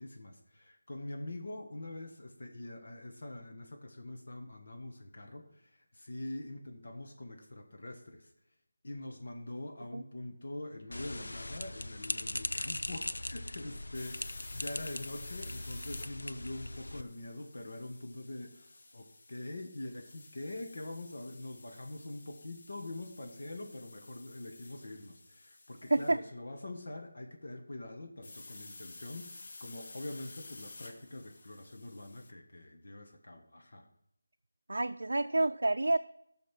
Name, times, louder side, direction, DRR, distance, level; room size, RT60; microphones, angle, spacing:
voice 1, 0.0-8.3 8.8-33.9, left 1 dB, 60° left, 3 dB, 1.5 m, -44 dB
sound 1, 10.9-17.0, left 1 dB, 85° left, 0.5 m, -40 dB
sound 2, 13.9-26.2 28.2-32.3, left 3 dB, 45° left, 0.9 m, -52 dB
voice 2, 34.7-36.0, right 2 dB, 75° right, 5 dB, 0.5 m, -28 dB
12.0 x 6.5 x 6.0 m, 0.74 s
figure-of-eight pair, 170°, 0 cm